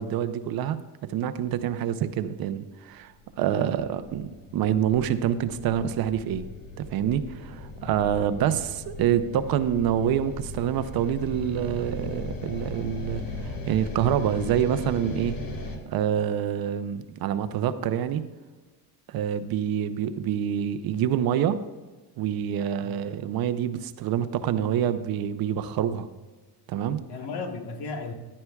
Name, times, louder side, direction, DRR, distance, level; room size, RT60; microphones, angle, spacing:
voice 1, 0.0-6.5 6.8-15.4 15.9-18.2 19.1-21.6 22.2-26.1 26.7-27.0, right 9 dB, 60° right, 0.6 m, -27 dB
sound 1, 3.2-15.8, left 2 dB, 55° left, 1.5 m, -38 dB
voice 2, 7.8-8.3 22.8-23.0 27.1-28.1, left 4 dB, 70° left, 1.4 m, -36 dB
14.0 x 11.0 x 2.3 m
cardioid pair, 155°, 41 cm